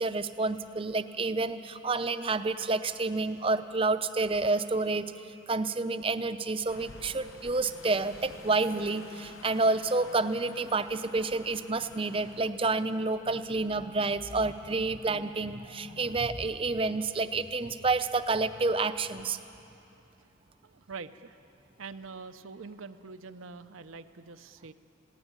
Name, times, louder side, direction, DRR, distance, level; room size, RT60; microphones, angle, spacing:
voice 1, 0.0-5.0 5.5-19.4, right 3 dB, 25° right, 10 dB, 0.6 m, -29 dB
sound 1, 6.7-12.5, left 3 dB, 90° left, 1.0 m, -50 dB
voice 2, 20.6-21.4 21.8-24.7, right 4 dB, 90° right, 9 dB, 0.7 m, -44 dB
21.0 x 16.0 x 9.6 m, 2.8 s
head